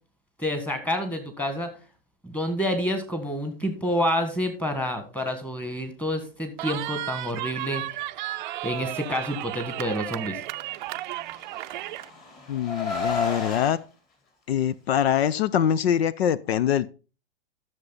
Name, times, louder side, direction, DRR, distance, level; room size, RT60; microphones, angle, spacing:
voice 1, 0.4-1.7 2.2-7.8 8.6-10.4, equal, 5° left, 1.7 m, -28 dB
Cheering, 6.6-12.1, right 15 dB, 50° right, 0.5 m, -34 dB
Car, 11.2-13.7, left 4 dB, 30° left, 3.7 m, -32 dB
voice 2, 12.5-13.8 14.5-16.9, left 9 dB, 75° left, 0.6 m, -24 dB
12.5 x 6.8 x 4.1 m
hypercardioid pair, 135°, 31 cm